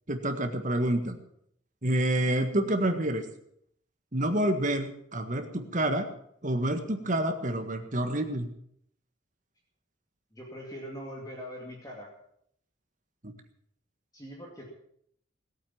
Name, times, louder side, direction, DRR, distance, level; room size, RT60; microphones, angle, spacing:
voice 1, 0.1-1.2 1.8-3.2 4.1-6.1 6.4-8.5 13.2-13.3, right 1 dB, 40° right, 6 dB, 1.6 m, -28 dB
voice 2, 10.3-12.1 14.1-14.7, equal, 20° left, -1 dB, 2.3 m, -42 dB
18.0 x 8.6 x 7.3 m, 0.68 s
head